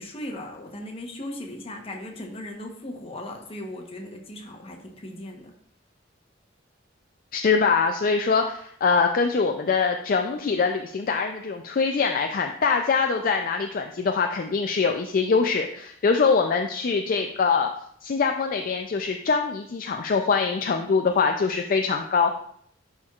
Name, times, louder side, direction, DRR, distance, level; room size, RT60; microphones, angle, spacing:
voice 1, 0.0-5.5 11.1-11.3, left 1 dB, 30° left, 2 dB, 1.0 m, -38 dB
voice 2, 7.3-17.7 18.0-22.3, left 5 dB, 45° left, 4 dB, 0.4 m, -23 dB
10.5 x 4.4 x 2.4 m, 0.66 s
head